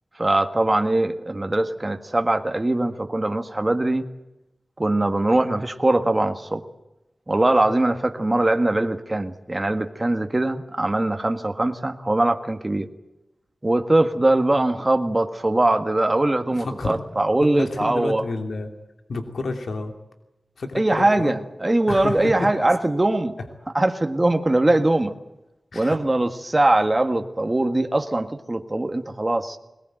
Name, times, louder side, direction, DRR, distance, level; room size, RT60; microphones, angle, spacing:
voice 1, 0.2-4.0 4.8-6.6 7.3-12.9 13.6-18.2 20.7-23.4 23.7-25.1 25.7-29.6, right 2 dB, 25° right, 6 dB, 1.6 m, -21 dB
voice 2, 16.6-17.0 17.5-18.7 19.1-19.9 20.6-21.4 21.9-22.6 25.7-26.0, left 3 dB, 80° left, 5 dB, 2.7 m, -30 dB
21.5 x 19.5 x 9.1 m, 0.95 s
wide cardioid pair, 80°, 0 cm